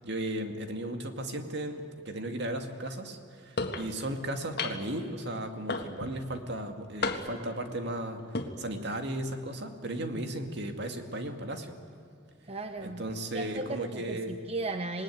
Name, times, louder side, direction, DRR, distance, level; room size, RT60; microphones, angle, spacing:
voice 1, 0.0-11.8 12.8-14.3, right 1 dB, 65° right, 5 dB, 2.2 m, -35 dB
sound 1, 3.6-3.9 4.6-5.0 5.7-6.2 7.0-7.5 8.2-8.5, left 3 dB, 60° left, 1.7 m, -32 dB
voice 2, 12.5-13.0 13.3-15.0, right 2 dB, 35° right, 7 dB, 0.9 m, -36 dB
26.5 x 19.5 x 9.4 m, 2.2 s
head